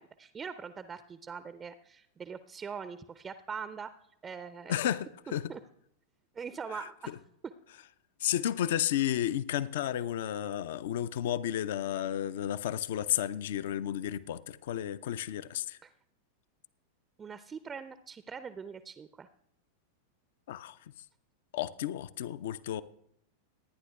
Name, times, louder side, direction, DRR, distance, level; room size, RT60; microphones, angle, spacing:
voice 1, 0.0-3.9 4.2-4.9 5.5-5.6 6.3-7.1 7.4-7.5 15.8-15.9 17.2-19.3, right 6 dB, 20° right, 0.4 m, -42 dB
voice 2, 4.7-5.5 8.2-15.8 20.5-20.8 21.5-22.8, left 11 dB, 55° left, 0.4 m, -32 dB
26.5 x 9.7 x 2.3 m
figure-of-eight pair, 90°, 0 cm